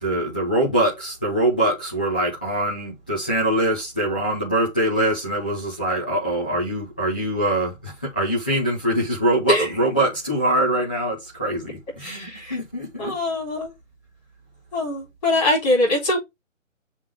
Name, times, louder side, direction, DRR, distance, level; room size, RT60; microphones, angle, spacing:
voice 1, 0.0-13.2, right 1 dB, 5° left, 0.6 m, -23 dB
voice 2, 12.0-12.6 13.0-13.7 14.7-16.2, left 2 dB, 30° left, 3.8 m, -22 dB
7.2 x 3.3 x 4.8 m
figure-of-eight pair, 155°, 40 cm